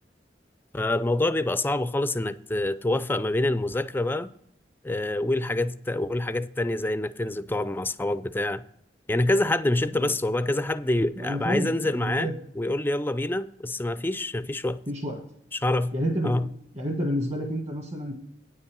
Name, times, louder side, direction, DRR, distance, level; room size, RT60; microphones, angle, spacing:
voice 1, 0.7-4.3 4.8-8.6 9.1-14.8 15.5-16.0 16.2-16.5, left 1 dB, 10° left, 0.4 m, -26 dB
voice 2, 11.2-12.3 14.9-15.2 15.9-16.3 16.7-18.1, equal, 40° right, 1.5 m, -29 dB
9.6 x 5.5 x 6.7 m
head